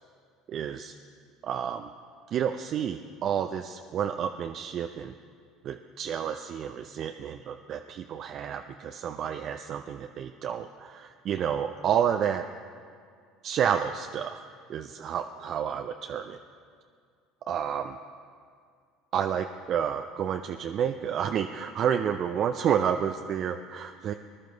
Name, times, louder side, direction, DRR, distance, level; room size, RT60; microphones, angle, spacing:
voice 1, 0.5-0.9 1.4-1.9 2.3-5.1 5.6-12.4 13.4-14.4 14.7-16.4 17.5-18.0 19.1-24.1, right 8 dB, 50° right, 6 dB, 0.5 m, -30 dB
20.5 x 12.0 x 4.0 m, 2.2 s
hypercardioid pair, 65°, 0 cm